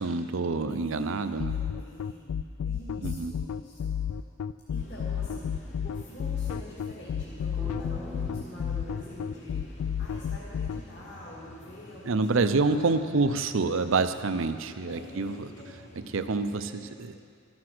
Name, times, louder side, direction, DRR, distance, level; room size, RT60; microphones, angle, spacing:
voice 1, 0.0-1.5 3.0-3.3 12.0-15.5 16.1-17.1, right 3 dB, 65° right, 10 dB, 0.6 m, -27 dB
voice 2, 0.7-2.4 2.6-4.0 4.7-13.2 13.5-13.8 14.9-15.6 16.7-16.8 17.1-17.2, left 1 dB, 50° left, -6 dB, 2.0 m, -47 dB
sound 1, 1.4-10.8, left 8 dB, 85° left, 0.3 m, -31 dB
sound 2, 4.7-16.6, equal, 30° left, 1.0 m, -50 dB
sound 3, 7.6-10.5, equal, 5° right, 0.7 m, -44 dB
13.5 x 9.5 x 6.1 m, 2.2 s
head